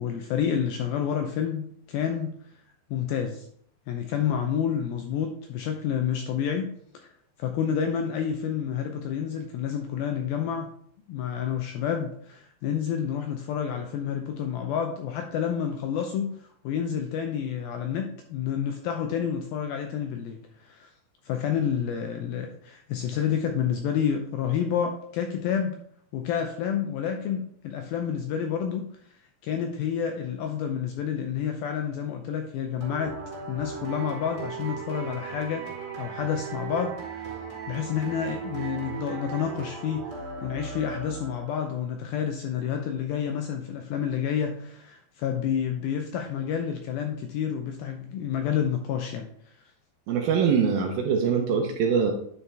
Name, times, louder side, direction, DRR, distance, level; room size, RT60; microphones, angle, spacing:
voice 1, 0.0-2.3 2.9-3.4 3.9-7.1 7.4-10.7 11.1-20.9 21.2-25.8 26.1-28.9 29.4-33.2 33.5-35.7 36.0-37.3 37.7-40.2 40.4-49.3, left 8 dB, 80° left, 4 dB, 2.2 m, -29 dB
sound 1, 32.8-41.7, right 6 dB, 25° right, 2.9 m, -37 dB
voice 2, 50.1-52.1, right 6 dB, 75° right, 2 dB, 2.2 m, -23 dB
9.7 x 5.7 x 3.3 m, 0.63 s
omnidirectional pair, 4.9 m